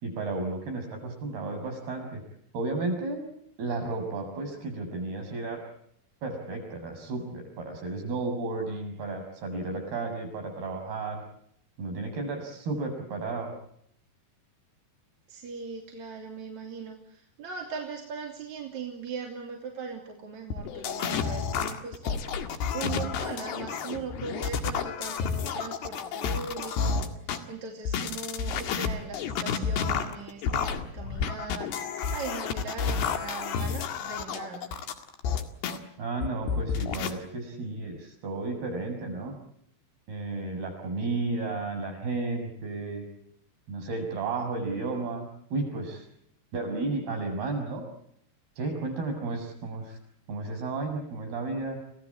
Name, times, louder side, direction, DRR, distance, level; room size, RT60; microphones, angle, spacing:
voice 1, 0.0-2.2 2.5-3.3 3.6-5.6 6.2-11.2 11.8-13.5 36.0-39.4 40.1-43.1 43.7-46.1 46.5-47.9 48.6-50.0 50.3-51.8, right 3 dB, 70° right, 4 dB, 9.0 m, -33 dB
voice 2, 15.3-22.2 22.7-34.7, right 5 dB, 45° right, 1 dB, 3.8 m, -39 dB
sound 1, 20.5-27.4 27.9-35.8 36.2-37.1, left 6 dB, 80° left, 4.0 m, -30 dB
29.0 x 17.5 x 8.8 m, 0.72 s
omnidirectional pair, 4.7 m